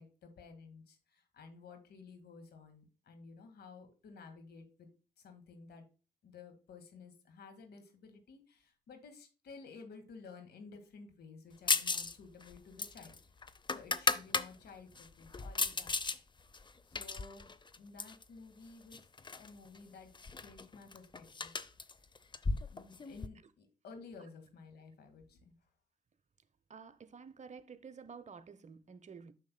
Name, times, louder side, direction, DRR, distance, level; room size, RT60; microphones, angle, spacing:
voice 1, 0.0-4.9 5.2-5.8 6.2-13.2 13.7-16.0 16.9-19.0 19.3-20.1 20.4-21.5 22.7-25.5 27.3-27.4 27.7-27.8, left 4 dB, 70° left, 1.9 m, -54 dB
sound 1, 11.7-12.1 12.4-14.5 14.9-16.2 16.5-18.2 18.9-19.5 19.7-19.8 20.1-23.3, left 4 dB, 25° left, 0.6 m, -35 dB
voice 2, 26.7-29.3, right 6 dB, 40° right, 0.8 m, -51 dB
9.4 x 6.5 x 2.2 m
hypercardioid pair, 45°, 17 cm